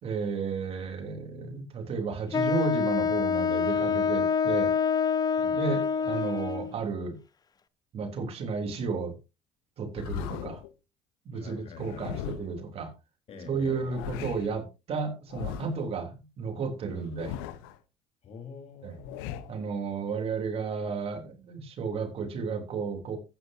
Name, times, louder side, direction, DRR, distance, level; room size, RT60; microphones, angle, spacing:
voice 1, 0.0-4.7 5.5-7.2 7.9-9.1 9.8-10.6 11.2-12.9 13.5-17.3 18.8-19.0 19.5-23.2, right 5 dB, 55° right, 3.4 m, -33 dB
Wind instrument woodwind instrument, 2.3-6.8, left 6 dB, 30° left, 0.9 m, -26 dB
sound 1, 10.0-10.7 11.7-12.7 13.7-14.6 15.3-15.9 16.9-17.8 18.8-19.6, left 11 dB, 85° left, 1.0 m, -39 dB
voice 2, 11.3-12.3 13.3-14.1 16.8-17.1 18.2-19.5, left 5 dB, 55° left, 3.9 m, -46 dB
14.0 x 9.9 x 2.8 m
supercardioid pair, 85°, 12 cm